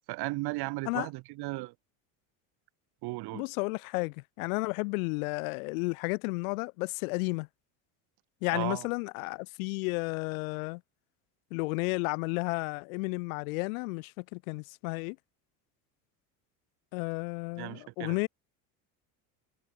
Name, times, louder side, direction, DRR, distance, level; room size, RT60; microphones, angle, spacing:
voice 1, 0.1-1.7 3.0-3.4 8.5-8.9 17.6-18.2, right 22 dB, 65° right, 4.7 m, -35 dB
voice 2, 3.3-7.5 8.4-10.8 11.5-15.2 16.9-18.3, left 29 dB, 80° left, 2.9 m, -32 dB
supercardioid pair, 110°, 41 cm